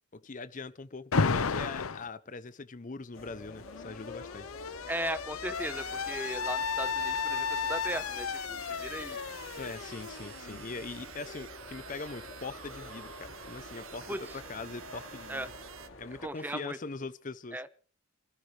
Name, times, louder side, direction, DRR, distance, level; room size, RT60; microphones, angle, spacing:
voice 1, 0.1-4.5 9.6-15.5 16.0-17.6, left 3 dB, 35° left, 0.7 m, -42 dB
Alarm, 1.1-2.1 3.3-11.0, left 5 dB, 90° left, 0.8 m, -34 dB
sound 1, 3.1-16.3, left 2 dB, 65° left, 4.7 m, -49 dB
voice 2, 4.9-9.2 14.1-14.4 15.3-15.5 16.2-16.8 17.5-17.7, right 1 dB, 10° right, 0.9 m, -37 dB
sound 2, 5.5-15.9, right 8 dB, 70° right, 1.0 m, -49 dB
29.5 x 13.5 x 3.3 m
head